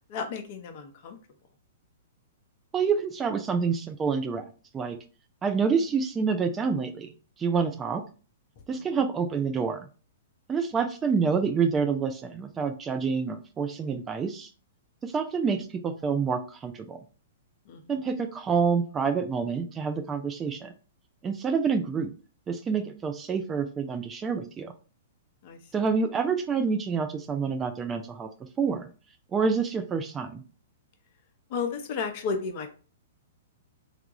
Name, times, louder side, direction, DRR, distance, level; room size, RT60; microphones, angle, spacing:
voice 1, 0.1-1.2 8.7-8.8 17.7-18.0 25.4-25.6 31.5-32.7, left 5 dB, 45° left, 6 dB, 0.7 m, -33 dB
voice 2, 2.7-4.5 4.7-5.0 5.4-8.0 8.7-9.9 10.5-14.5 15.0-17.0 17.9-20.7 21.2-22.1 22.5-24.7 25.7-28.3 28.6-28.9 29.3-30.4, right 5 dB, 20° right, 7 dB, 0.4 m, -27 dB
3.5 x 2.3 x 2.9 m, 0.37 s
figure-of-eight pair, 110°, 0 cm